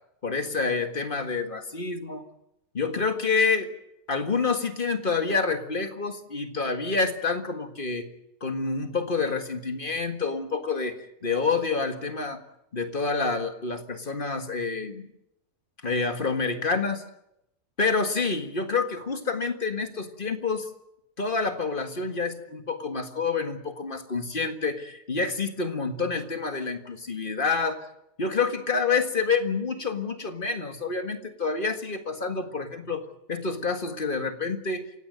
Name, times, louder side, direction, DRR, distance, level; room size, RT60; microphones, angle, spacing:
voice 1, 0.2-2.2 2.7-3.7 4.1-8.1 8.4-12.4 12.7-15.1 15.8-17.0 17.8-20.7 21.2-27.9 28.2-34.9, left 4 dB, 35° left, 7 dB, 1.9 m, -28 dB
28.5 x 17.0 x 8.0 m, 0.82 s
omnidirectional pair, 1.5 m